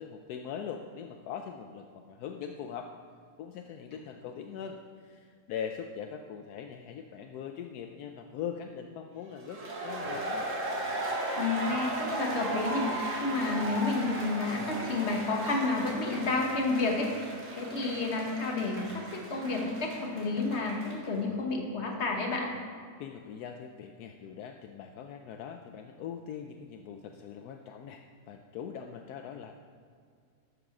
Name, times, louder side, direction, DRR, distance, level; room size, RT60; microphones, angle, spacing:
voice 1, 0.0-2.9 3.4-10.5 23.0-29.5, left 7 dB, 80° left, 5 dB, 1.1 m, -41 dB
sound 1, 9.4-21.1, right 1 dB, 50° right, 2.2 m, -36 dB
voice 2, 11.4-22.5, left 3 dB, 45° left, 1 dB, 1.6 m, -30 dB
11.0 x 6.6 x 6.0 m, 2.1 s
omnidirectional pair, 1.7 m